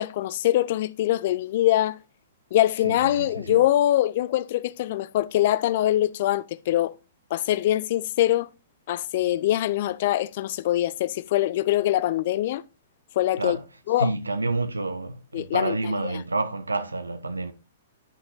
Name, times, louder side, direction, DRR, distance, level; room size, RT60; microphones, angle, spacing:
voice 1, 0.0-2.0 2.5-6.9 7.3-8.5 8.9-12.6 13.2-13.6 13.9-14.1 15.3-15.9, left 13 dB, 45° left, 0.4 m, -23 dB
voice 2, 2.8-3.6 13.4-13.6 14.0-17.5, right 2 dB, 80° right, 0.8 m, -29 dB
10.0 x 5.7 x 2.7 m
figure-of-eight pair, 110°, 0 cm